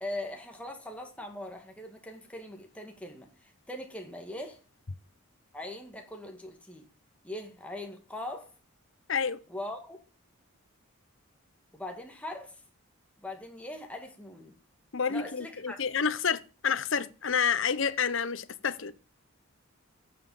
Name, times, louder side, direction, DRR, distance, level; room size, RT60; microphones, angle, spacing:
voice 1, 0.0-4.6 5.5-6.9 7.2-8.5 9.5-10.0 11.7-12.6 13.2-14.6 15.1-15.8, left 1 dB, 5° left, 1.9 m, -41 dB
voice 2, 9.1-9.4 14.9-18.9, left 6 dB, 60° left, 0.8 m, -29 dB
9.4 x 7.3 x 7.3 m
head